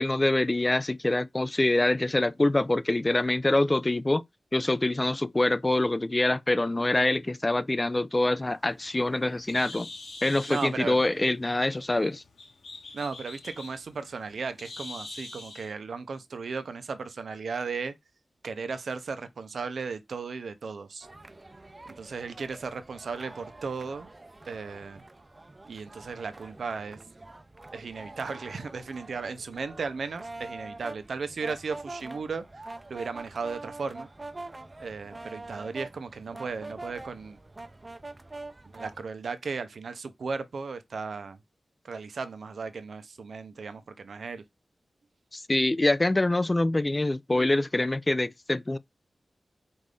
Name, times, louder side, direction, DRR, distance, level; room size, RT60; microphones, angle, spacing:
voice 1, 0.0-4.2 4.5-9.9 10.2-12.2 45.3-48.8, left 2 dB, 25° left, 0.4 m, -25 dB
Bird, 8.4-15.7, left 3 dB, 80° left, 1.0 m, -45 dB
voice 2, 10.5-11.0 12.9-17.9 18.4-21.1 21.9-24.1 24.5-25.0 25.6-27.0 27.7-32.6 32.9-34.1 34.8-37.4 38.7-41.4 41.8-44.4, right 5 dB, 80° right, 0.7 m, -36 dB
sound 1, 21.0-39.0, right 2 dB, 30° right, 0.5 m, -45 dB
5.2 x 2.6 x 3.4 m
cardioid pair, 60°, 0 cm